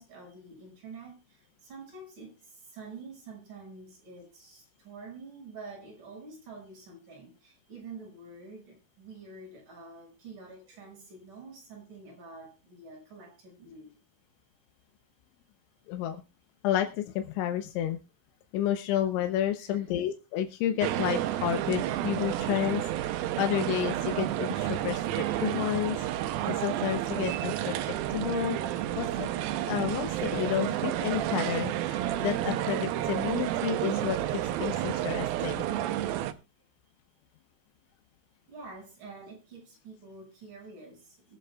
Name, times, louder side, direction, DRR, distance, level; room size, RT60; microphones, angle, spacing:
voice 1, 0.0-13.9 19.6-19.9 38.5-41.4, right 3 dB, 45° right, -2 dB, 7.5 m, -47 dB
voice 2, 16.6-18.0 18.5-26.1 26.5-27.8 28.1-28.6 29.0-29.3 29.7-36.0, left 11 dB, 85° left, 6 dB, 3.3 m, -31 dB
sound 1, 20.8-36.3, right 13 dB, 85° right, 2.1 m, -30 dB
23.5 x 8.3 x 2.3 m, 0.29 s
omnidirectional pair, 5.2 m